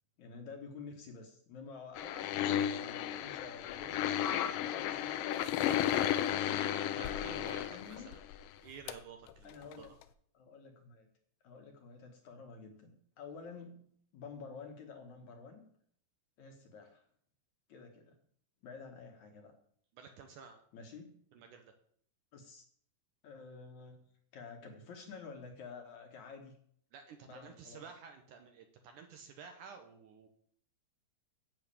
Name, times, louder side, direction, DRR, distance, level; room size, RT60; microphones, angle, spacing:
voice 1, 0.2-5.9 7.0-7.4 7.7-8.1 9.4-9.9 10.3-11.1 11.4-13.8 14.1-15.6 16.4-17.1 17.7-18.2 18.6-19.5 20.7-21.1 22.3-22.7 23.2-24.0 24.3-26.6 27.2-27.8, left 5 dB, 60° left, 3 dB, 2.3 m, -50 dB
sound 1, 2.0-8.5 8.9-9.0 9.3-9.4 9.7-9.8 10.0-10.1, left 11 dB, 80° left, 2.0 m, -34 dB
voice 2, 6.5-8.2 8.6-9.9 20.0-20.6 21.3-21.7 26.9-30.3, right 6 dB, 70° right, 5 dB, 2.1 m, -52 dB
10.5 x 5.7 x 8.4 m, 0.62 s
omnidirectional pair, 4.4 m